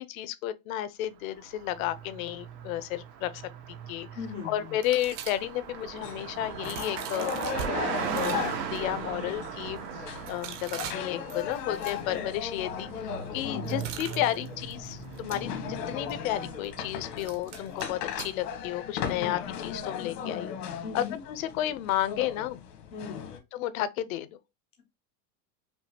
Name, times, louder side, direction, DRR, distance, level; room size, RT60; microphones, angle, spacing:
voice 1, 0.0-3.4 3.7-4.1 4.4-7.3 7.6-22.6 23.5-24.3, left 13 dB, 60° left, 0.7 m, -32 dB
Car passing by, 1.3-17.4, right 7 dB, 85° right, 1.3 m, -39 dB
voice 2, 4.1-4.8 13.4-13.7 19.2-19.4 20.8-21.2 22.9-23.2, left 5 dB, 15° left, 0.4 m, -38 dB
sound 1, 4.8-7.7 8.1-18.7, right 8 dB, 50° right, 0.8 m, -45 dB
sound 2, 6.0-23.4, left 7 dB, 85° left, 1.5 m, -37 dB
5.4 x 2.4 x 2.8 m
supercardioid pair, 175°, 46 cm